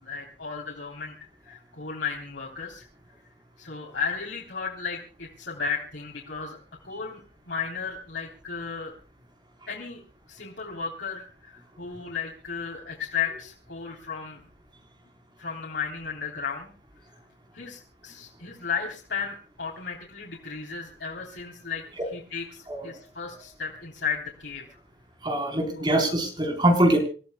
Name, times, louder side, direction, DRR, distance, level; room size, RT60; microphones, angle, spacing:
voice 1, 0.0-2.9 3.6-6.6 6.8-8.9 9.7-10.0 10.3-14.4 15.4-16.7 17.5-21.8 22.1-24.8 25.7-25.9, left 6 dB, 90° left, -2 dB, 3.5 m, -34 dB
voice 2, 22.7-23.0 25.2-27.0, right 1 dB, 25° right, 4 dB, 4.0 m, -23 dB
27.5 x 14.5 x 2.3 m, 0.38 s
head